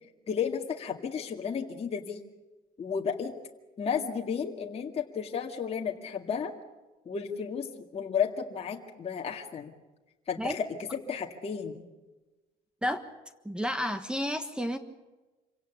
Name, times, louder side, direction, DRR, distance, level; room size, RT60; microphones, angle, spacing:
voice 1, 0.3-2.2 2.8-3.3 3.8-6.5 7.1-7.7 7.9-9.7 10.3-10.6 11.1-11.8, left 7 dB, 35° left, 2.0 m, -32 dB
voice 2, 13.4-14.8, equal, 5° right, 1.4 m, -31 dB
26.5 x 17.0 x 8.5 m
cardioid pair, 110°, 17 cm